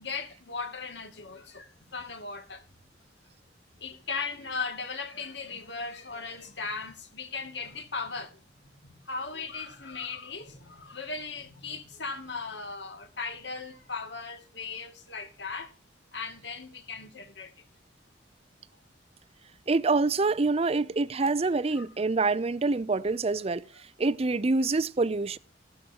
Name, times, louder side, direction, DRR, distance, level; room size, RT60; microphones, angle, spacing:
voice 1, 0.0-2.6 3.8-8.4 8.8-15.7 16.1-17.5 21.8-21.9 23.7-23.8, left 4 dB, 70° left, 2.4 m, -37 dB
voice 2, 19.7-23.6 24.0-25.4, right 3 dB, 35° right, 0.5 m, -26 dB
14.5 x 12.0 x 2.9 m
head